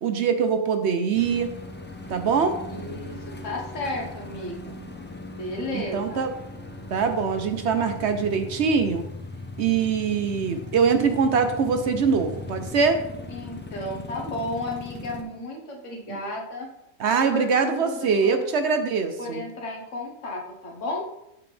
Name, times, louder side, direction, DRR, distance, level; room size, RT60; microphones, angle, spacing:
voice 1, 0.0-1.5 2.1-2.6 5.7-6.3 6.9-9.0 9.6-13.0 16.1-16.2 17.0-19.4, right 5 dB, 65° right, 7 dB, 0.9 m, -23 dB
sound 1, 1.1-15.2, left 2 dB, 15° left, 0.5 m, -39 dB
voice 2, 2.7-4.8 5.3-6.2 13.3-16.7 17.2-18.4 19.2-21.1, left 2 dB, 65° left, 0 dB, 1.5 m, -33 dB
7.0 x 6.9 x 3.3 m, 0.85 s
omnidirectional pair, 1.4 m